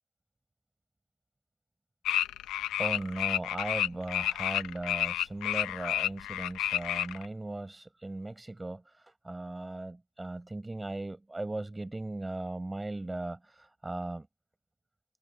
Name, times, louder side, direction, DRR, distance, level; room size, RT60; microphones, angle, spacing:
sound 1, 2.1-7.3, left 13 dB, 90° left, 0.9 m, -30 dB
voice 1, 2.8-14.3, right 2 dB, 15° right, 7.9 m, -38 dB
cardioid pair, 90°, 0 cm